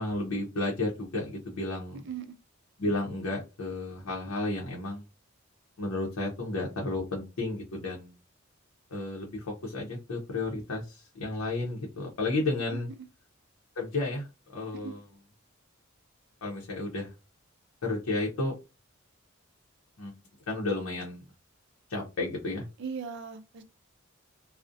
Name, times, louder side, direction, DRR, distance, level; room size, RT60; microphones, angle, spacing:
voice 1, 0.0-2.0 2.8-5.0 5.8-8.1 8.9-12.9 13.8-14.3 14.5-15.0 16.4-17.1 17.8-18.5 20.0-20.1 20.5-21.2 21.9-22.7, left 2 dB, 80° left, 0.6 m, -32 dB
voice 2, 1.9-2.4 12.7-13.1 14.7-15.0 22.8-23.6, right 6 dB, 55° right, 0.4 m, -39 dB
2.5 x 2.0 x 2.5 m
head